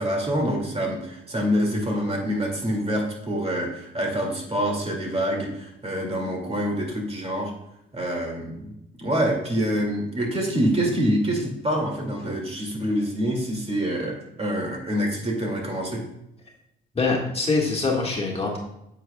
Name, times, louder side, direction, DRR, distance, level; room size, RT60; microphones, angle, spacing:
voice 1, 0.0-7.5 7.9-8.7 9.0-16.0, equal, 30° right, 0 dB, 2.4 m, -26 dB
voice 2, 16.9-18.6, left 3 dB, 30° left, -1 dB, 1.8 m, -24 dB
9.2 x 7.9 x 2.3 m, 0.82 s
cardioid pair, 90°, 20 cm